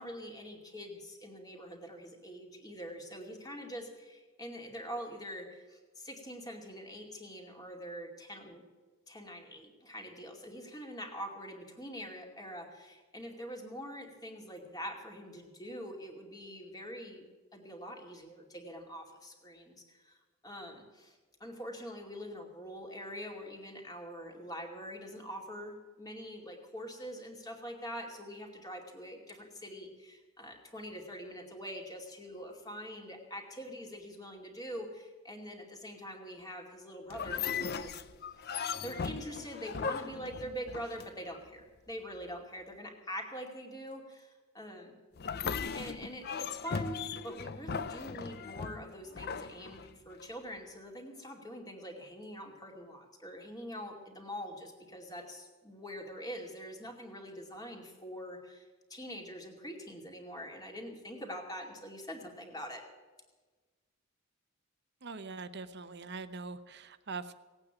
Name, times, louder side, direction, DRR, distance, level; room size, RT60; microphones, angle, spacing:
voice 1, 0.0-8.6 9.1-17.2 17.5-20.2 20.4-38.0 38.5-44.9 45.7-62.8, equal, 20° left, 2 dB, 2.4 m, -44 dB
sound 1, 37.1-41.4 45.2-50.3, left 6 dB, 50° left, 0.5 m, -38 dB
voice 2, 65.0-67.3, right 4 dB, 50° right, 12 dB, 0.8 m, -42 dB
18.0 x 8.8 x 9.1 m, 1.3 s
head